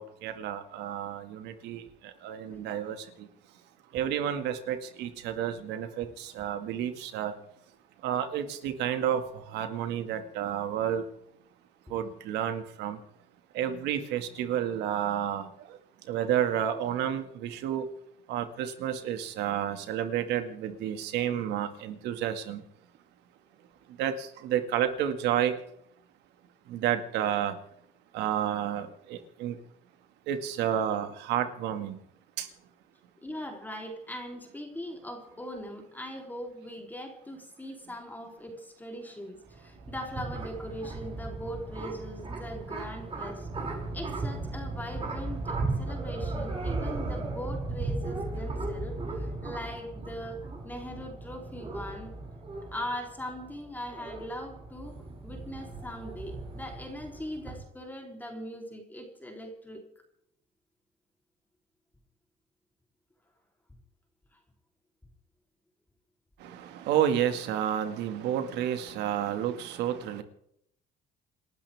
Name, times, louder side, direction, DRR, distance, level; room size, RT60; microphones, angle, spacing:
voice 1, 0.0-3.3 3.9-7.3 8.0-11.0 11.9-13.0 13.5-15.8 16.1-17.9 18.3-22.6 24.0-25.5 26.7-27.6 28.1-29.6 30.3-32.0 32.4-32.5 66.4-70.2, right 10 dB, 90° right, 2.2 m, -30 dB
voice 2, 33.2-43.5 43.9-52.1 52.7-54.9 55.2-59.8, equal, 10° left, 3.7 m, -40 dB
sound 1, 39.5-57.6, right 2 dB, 35° right, 6.4 m, -36 dB
28.5 x 13.0 x 3.6 m
cardioid pair, 110°, 17 cm